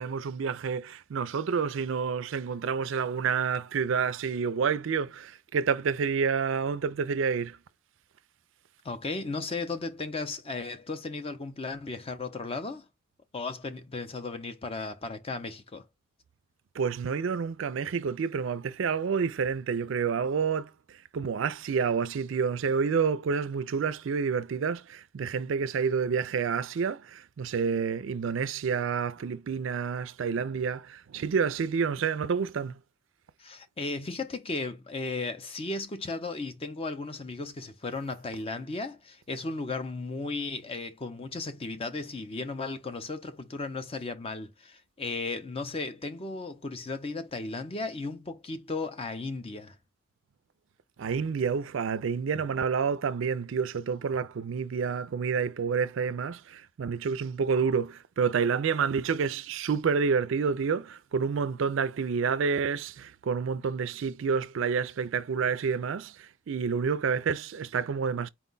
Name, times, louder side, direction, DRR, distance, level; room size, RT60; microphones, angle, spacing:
voice 1, 0.0-7.6 16.8-20.7 21.1-32.8 51.0-68.3, right 6 dB, 65° right, 0.4 m, -29 dB
voice 2, 8.8-12.9 13.3-15.8 33.4-49.8, left 3 dB, 25° left, 0.5 m, -35 dB
4.5 x 2.2 x 3.8 m
head